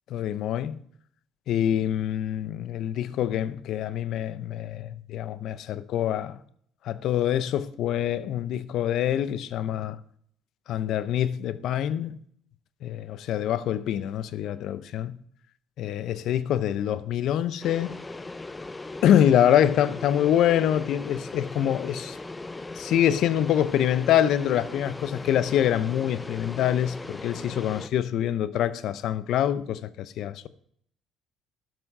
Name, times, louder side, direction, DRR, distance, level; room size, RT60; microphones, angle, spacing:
voice 1, 0.1-0.8 1.5-6.4 6.8-10.0 10.7-12.2 12.8-15.2 15.8-18.0 19.0-22.2 22.8-30.5, left 10 dB, 65° left, 0.7 m, -25 dB
sound 1, 17.6-27.9, left 2 dB, 20° left, 0.6 m, -39 dB
12.5 x 6.2 x 5.5 m
supercardioid pair, 70°, 0 cm